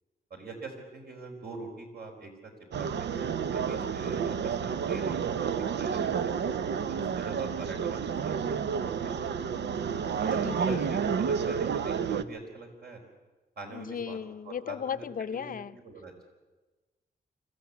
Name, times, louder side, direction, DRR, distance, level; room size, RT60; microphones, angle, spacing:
voice 1, 0.3-2.5 2.8-3.1 3.5-6.3 6.9-9.3 10.2-13.0 13.6-14.2 14.4-16.3, right 3 dB, 65° right, 2 dB, 4.7 m, -44 dB
sound 1, 2.7-12.2, right 7 dB, 85° right, 0.8 m, -30 dB
voice 2, 10.4-10.8 13.7-15.8, left 7 dB, 55° left, 13 dB, 0.6 m, -36 dB
25.0 x 15.0 x 8.4 m, 1.2 s
wide cardioid pair, 135°, 18 cm